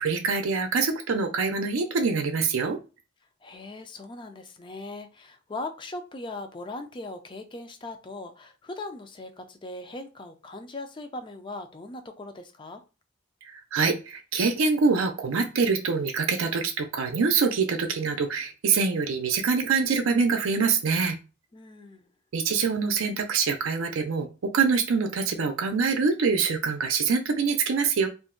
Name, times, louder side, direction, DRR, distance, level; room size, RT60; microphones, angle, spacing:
voice 1, 0.0-2.8 13.5-21.2 22.3-28.1, right 5 dB, 80° right, 0.5 m, -25 dB
voice 2, 3.4-12.8 21.5-22.1, left 2 dB, 25° left, 0.4 m, -39 dB
2.5 x 2.1 x 3.7 m
head